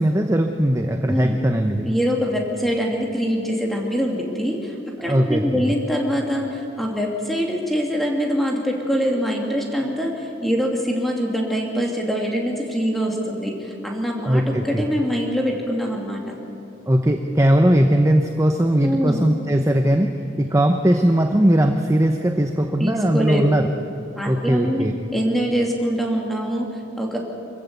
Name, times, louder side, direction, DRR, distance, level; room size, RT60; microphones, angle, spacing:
voice 1, 0.0-1.9 5.0-5.7 14.2-14.8 16.9-20.1 20.4-23.7 24.3-24.9, right 1 dB, 15° right, 4 dB, 0.8 m, -19 dB
voice 2, 1.8-16.3 18.8-19.2 22.8-23.4 24.2-24.9 25.1-27.2, equal, ahead, -1 dB, 3.0 m, -24 dB
25.5 x 15.0 x 8.4 m, 2.9 s
head